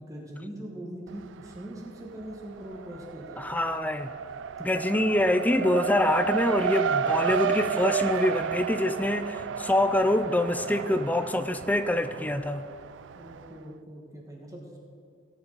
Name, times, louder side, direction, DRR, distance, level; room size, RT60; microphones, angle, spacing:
voice 1, 0.0-3.4 13.1-14.8, right 1 dB, 20° right, -1 dB, 1.3 m, -41 dB
Race car auto racing, 1.1-1.8 2.1-13.5, right 7 dB, 70° right, 0.3 m, -32 dB
voice 2, 3.4-4.1 4.6-12.7, left 1 dB, 10° left, 10 dB, 0.4 m, -25 dB
17.5 x 7.0 x 3.9 m, 2.4 s
head